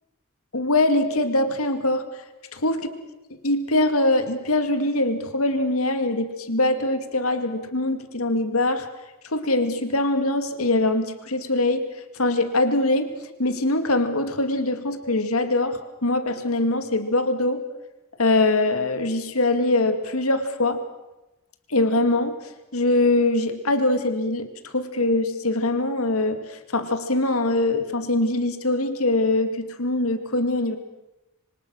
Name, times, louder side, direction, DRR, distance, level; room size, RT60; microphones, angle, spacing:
voice 1, 0.5-2.1 2.6-2.9 3.4-8.9 9.3-11.9 12.2-13.1 13.4-17.6 18.2-20.8 21.7-22.4 22.7-24.5 24.7-30.8, left 2 dB, 85° left, 8 dB, 2.2 m, -23 dB
26.5 x 24.5 x 6.3 m, 1.0 s
head